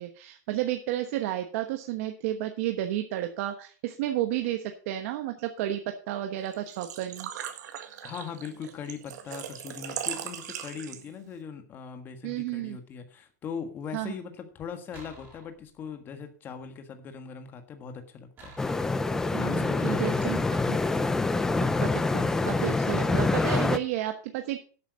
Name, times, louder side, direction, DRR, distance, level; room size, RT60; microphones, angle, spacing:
voice 1, 0.0-7.3 12.2-12.8 13.9-14.1 19.3-20.4 20.7-20.8 21.6-24.6, right 13 dB, 50° right, 6 dB, 1.1 m, -32 dB
Engine / Trickle dribble / Fill (with liquid), 6.4-11.3, right 10 dB, 75° right, 1.9 m, -38 dB
voice 2, 8.0-18.7 19.4-20.5, left 6 dB, 20° left, 7 dB, 1.4 m, -40 dB
sound 1, 14.9-16.1 18.4-19.2, right 2 dB, 20° right, 4.4 m, -51 dB
sound 2, 18.6-23.8, left 3 dB, 5° left, 0.4 m, -26 dB
11.5 x 8.2 x 5.0 m, 0.41 s
supercardioid pair, 165°, 10 cm